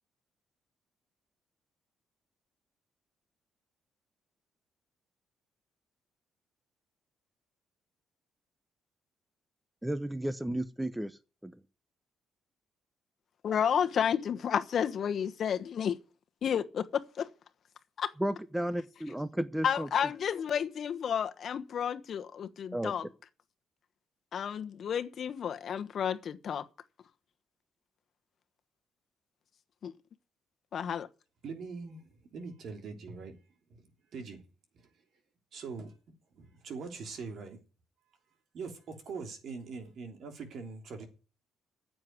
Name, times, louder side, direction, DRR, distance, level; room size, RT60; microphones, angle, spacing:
voice 1, 9.8-11.5 18.2-19.9 22.7-22.9, right 1 dB, 5° right, 0.9 m, -33 dB
voice 2, 13.4-16.0 16.4-17.3 18.0-18.1 19.6-23.1 24.3-26.6 29.8-29.9 30.7-31.1, left 8 dB, 60° left, 1.2 m, -31 dB
voice 3, 31.4-33.3 33.7-34.4 35.5-35.9 36.3-37.6 38.5-41.1, right 4 dB, 65° right, 3.3 m, -42 dB
9.7 x 7.8 x 9.5 m
cardioid pair, 90°, 0 cm